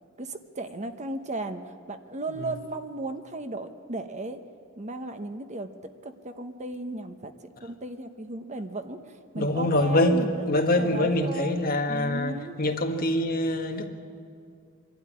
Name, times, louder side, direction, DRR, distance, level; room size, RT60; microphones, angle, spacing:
voice 1, 0.2-4.4 4.8-5.7 6.0-7.3 7.6-10.4 10.7-12.6, right 2 dB, 35° right, 1.0 m, -35 dB
voice 2, 9.3-13.9, left 1 dB, 45° left, 1.7 m, -25 dB
25.0 x 12.0 x 9.9 m
head